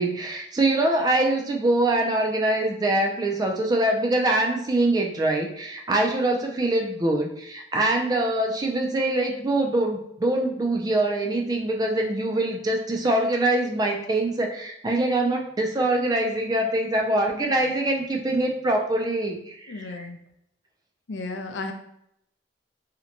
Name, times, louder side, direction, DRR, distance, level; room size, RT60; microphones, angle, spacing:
voice 1, 0.0-20.1, right 1 dB, 20° right, 2 dB, 0.3 m, -24 dB
voice 2, 19.7-20.2 21.1-21.7, left 3 dB, 80° left, 5 dB, 0.4 m, -33 dB
2.8 x 2.1 x 2.5 m, 0.74 s
head